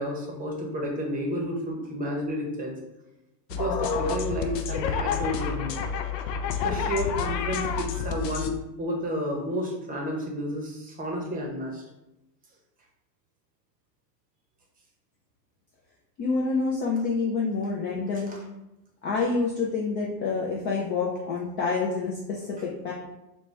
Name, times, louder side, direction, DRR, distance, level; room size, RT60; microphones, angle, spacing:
voice 1, 0.0-2.7 3.5-5.7 6.6-11.8 17.0-17.1 18.1-18.4 22.6-22.7, equal, 15° right, 0 dB, 0.7 m, -31 dB
sound 1, 3.5-8.5, left 6 dB, 80° left, 0.6 m, -29 dB
voice 2, 16.2-18.3 19.0-22.9, left 4 dB, 25° left, -3 dB, 0.3 m, -27 dB
4.0 x 2.2 x 3.2 m, 0.94 s
hypercardioid pair, 105°, 49 cm